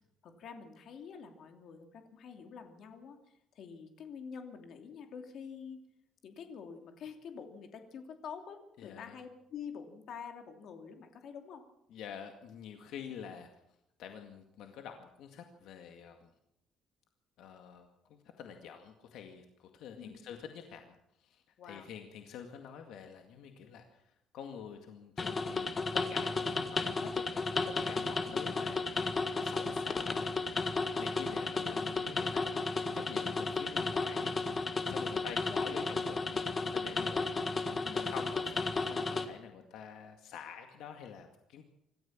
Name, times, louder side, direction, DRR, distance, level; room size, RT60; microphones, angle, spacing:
voice 1, 0.2-5.8 6.2-11.6 20.0-20.2 21.6-21.9 27.8-28.4 34.8-35.8 36.9-37.1 37.8-38.1, left 6 dB, 55° left, 5 dB, 2.9 m, -47 dB
voice 2, 8.8-9.2 11.9-13.5 14.0-16.3 17.4-21.0 21.2-24.0 24.3-25.7 26.1-28.9 29.4-32.6 32.9-34.4 34.9-36.4 36.7-37.4 37.7-38.4 38.8-41.6, left 7 dB, 70° left, 4 dB, 2.0 m, -47 dB
sound 1, 25.2-39.2, left 3 dB, 25° left, 1.6 m, -33 dB
26.0 x 14.0 x 7.3 m, 0.80 s
cardioid pair, 160°, 0 cm